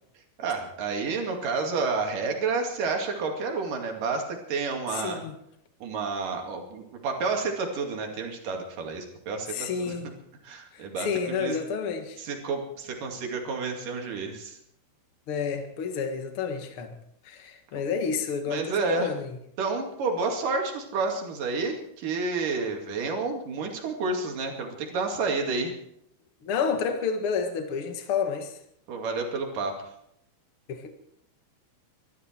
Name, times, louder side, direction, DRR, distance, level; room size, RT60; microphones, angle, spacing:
voice 1, 0.4-5.2 5.8-10.0 10.4-11.6 12.2-14.6 17.7-17.8 18.5-19.1 19.6-25.8 28.9-29.8, right 4 dB, 50° right, 3 dB, 3.5 m, -30 dB
voice 2, 4.9-5.3 9.5-10.1 10.7-12.2 15.3-16.9 17.2-19.3 26.4-28.5 30.7-30.9, left 6 dB, 90° left, 5 dB, 1.2 m, -30 dB
23.5 x 12.5 x 4.5 m, 0.71 s
omnidirectional pair, 5.5 m